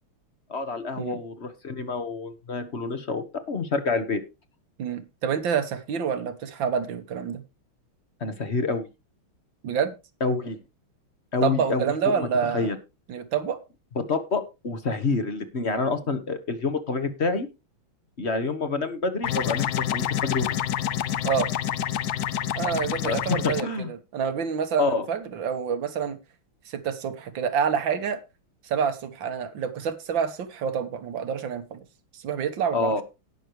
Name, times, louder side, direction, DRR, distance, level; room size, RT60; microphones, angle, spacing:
voice 1, 0.5-4.2 8.2-8.9 10.2-10.6 11.3-12.3 12.5-12.8 13.9-17.5 18.2-20.6 23.0-23.9 24.8-25.1 32.7-33.0, left 3 dB, 35° left, 11 dB, 1.3 m, -27 dB
voice 2, 4.8-7.4 9.6-9.9 11.4-12.7 13.1-13.6 21.2-21.5 22.6-26.2 26.7-28.2 28.6-31.8 32.1-33.0, right 7 dB, 65° right, 10 dB, 1.9 m, -27 dB
sound 1, 19.2-23.6, left 11 dB, 70° left, 0.9 m, -27 dB
18.5 x 6.4 x 3.1 m, 0.26 s
omnidirectional pair, 2.3 m